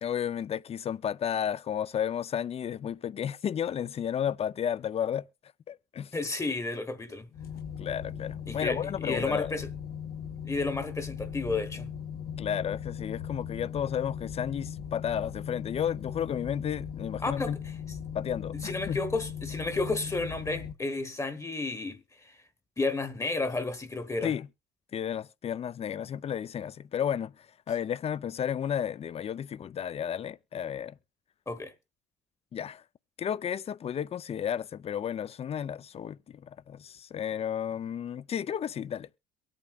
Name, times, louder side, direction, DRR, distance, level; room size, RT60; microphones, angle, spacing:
voice 1, 0.0-5.3 5.7-6.1 7.8-9.6 12.4-17.6 18.1-19.0 24.2-24.5 24.9-27.3 27.7-31.0 32.5-32.8 33.2-39.1, left 9 dB, 35° left, 0.5 m, -32 dB
voice 2, 6.1-7.3 8.5-9.7 10.4-11.9 17.2-17.6 18.5-22.4 22.8-24.3 31.5-31.7, left 3 dB, 20° left, 1.1 m, -32 dB
sound 1, 7.3-20.7, left 8 dB, 65° left, 1.2 m, -38 dB
23.0 x 8.7 x 2.4 m
cardioid pair, 110°, 17 cm